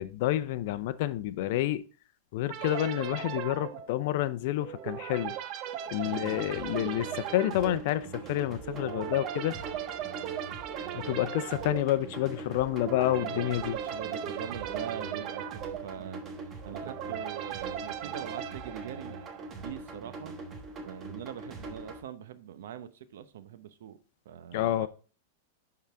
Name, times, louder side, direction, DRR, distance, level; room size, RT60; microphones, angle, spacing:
voice 1, 0.0-1.8 2.3-5.3 5.9-9.5 10.9-13.8 24.5-24.9, left 14 dB, 60° left, 0.5 m, -29 dB
sound 1, 2.5-19.7, right 10 dB, 40° right, 0.6 m, -38 dB
sound 2, 6.0-22.0, right 3 dB, 25° right, 1.2 m, -43 dB
voice 2, 6.1-6.5 13.2-16.2 16.6-19.2 19.5-20.4 20.8-24.0 24.2-24.9, right 9 dB, 75° right, 0.7 m, -42 dB
10.5 x 3.9 x 3.4 m
supercardioid pair, 140°, 0 cm